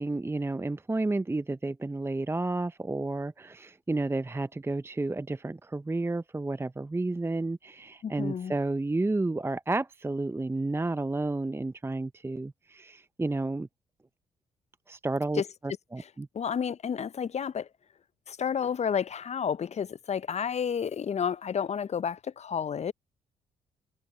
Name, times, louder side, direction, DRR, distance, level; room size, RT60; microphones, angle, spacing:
voice 1, 0.0-13.7 14.9-16.3, right 2 dB, 15° right, 0.8 m, -31 dB
voice 2, 8.0-8.6 15.3-15.4 16.0-16.1 16.3-17.7 18.3-22.9, left 7 dB, 40° left, 0.7 m, -31 dB
hypercardioid pair, 45°, 18 cm